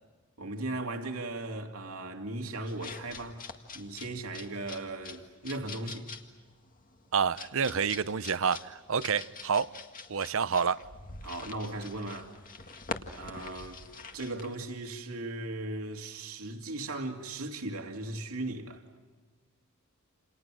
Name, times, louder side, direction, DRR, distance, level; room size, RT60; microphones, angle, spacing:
voice 1, 0.4-3.4 3.7-6.1 11.2-12.3 13.2-13.8 14.1-18.8, right 2 dB, 80° right, 2.6 m, -37 dB
sound 1, 2.7-14.5, left 4 dB, 40° left, 2.0 m, -45 dB
voice 2, 7.1-9.7 10.1-10.8, right 6 dB, 65° right, 0.8 m, -28 dB
29.0 x 29.0 x 6.3 m
head